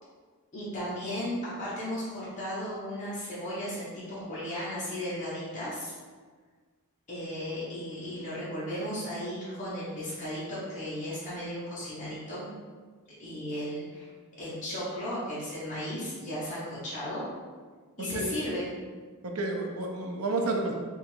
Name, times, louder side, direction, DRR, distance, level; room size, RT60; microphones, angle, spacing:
voice 1, 0.5-5.9 7.1-12.5 13.2-14.1 14.4-17.2 18.0-18.8, equal, 35° left, -10 dB, 1.2 m, -35 dB
voice 2, 18.0-18.4 19.2-20.8, right 2 dB, 75° right, 2 dB, 0.6 m, -31 dB
3.8 x 2.5 x 4.5 m, 1.5 s
head